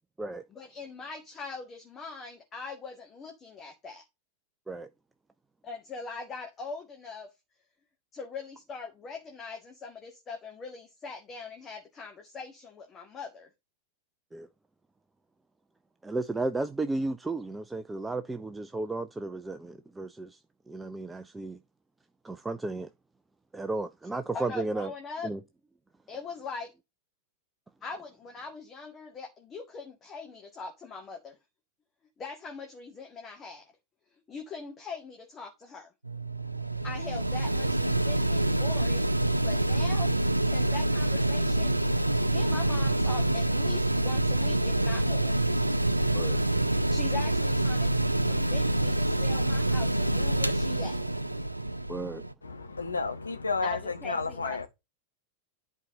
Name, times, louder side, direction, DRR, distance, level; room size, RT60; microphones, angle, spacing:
voice 1, 0.5-4.0 5.6-7.3 8.1-13.5 24.3-25.3 26.1-26.7 27.8-31.4 32.2-33.7 34.3-35.9 36.8-40.1 40.4-41.7 42.3-45.4 46.9-47.9 48.3-51.0 53.6-54.7, left 4 dB, 25° left, 1.7 m, -41 dB
voice 2, 16.0-20.4 20.7-21.6 22.2-22.9 23.5-24.9 25.2-25.4 46.1-46.4 51.9-52.2, right 2 dB, 10° right, 0.5 m, -33 dB
Mechanical fan, 36.0-52.3, right 1 dB, 85° right, 0.5 m, -26 dB
voice 3, 52.4-54.7, left 4 dB, 80° left, 1.1 m, -32 dB
11.0 x 4.5 x 4.1 m
figure-of-eight pair, 90°, 0 cm